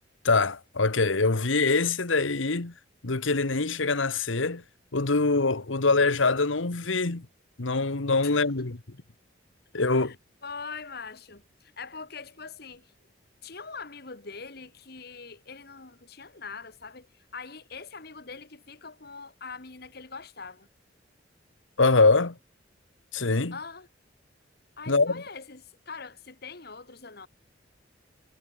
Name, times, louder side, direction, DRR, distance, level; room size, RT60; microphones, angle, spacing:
voice 1, 0.2-2.7 3.0-4.6 4.9-7.3 7.6-8.8 9.7-10.2 21.8-22.4 23.1-23.6 24.9-25.2, left 3 dB, 90° left, 1.5 m, -24 dB
voice 2, 10.4-12.9 13.4-20.7 23.5-23.9 24.8-27.3, left 5 dB, 55° left, 2.1 m, -42 dB
head